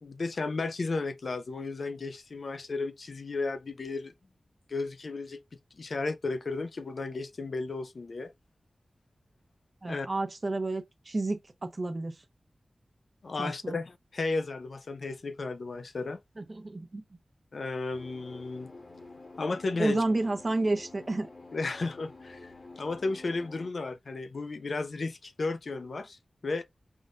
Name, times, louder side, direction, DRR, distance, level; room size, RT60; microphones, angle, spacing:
voice 1, 0.0-4.1 4.7-5.4 5.8-8.3 9.9-10.1 13.2-16.2 17.5-18.7 19.4-20.0 21.5-26.7, left 3 dB, 70° left, 0.5 m, -34 dB
voice 2, 9.8-12.2 13.4-13.8 16.4-17.0 19.8-21.3, right 2 dB, 45° right, 0.8 m, -30 dB
sound 1, 17.9-23.7, left 3 dB, 55° left, 1.2 m, -49 dB
3.6 x 2.6 x 3.2 m
cardioid pair, 50°, 0 cm